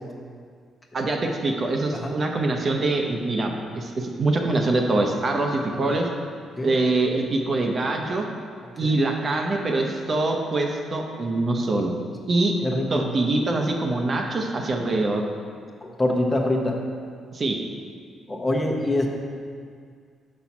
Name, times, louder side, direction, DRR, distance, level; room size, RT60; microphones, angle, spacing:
voice 1, 0.9-6.1 6.6-8.2 8.8-11.9 12.3-12.6 12.9-15.2 17.3-17.6, right 2 dB, 45° right, 2 dB, 0.8 m, -24 dB
voice 2, 12.6-13.1 15.8-16.8 18.3-19.1, left 1 dB, 25° left, 1 dB, 1.0 m, -25 dB
5.5 x 4.3 x 5.9 m, 2.1 s
supercardioid pair, 70°, 0 cm